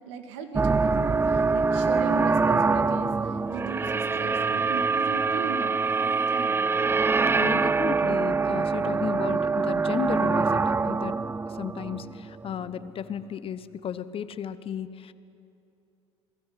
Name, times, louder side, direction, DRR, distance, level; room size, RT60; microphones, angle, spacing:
voice 1, 0.0-7.0, right 4 dB, 70° right, 7 dB, 2.0 m, -38 dB
sound 1, 0.5-12.7, right 4 dB, 15° right, 0.4 m, -24 dB
voice 2, 7.4-15.1, left 8 dB, 40° left, 14 dB, 1.0 m, -34 dB
27.0 x 19.5 x 5.8 m, 2.8 s
hypercardioid pair, 65°, 15 cm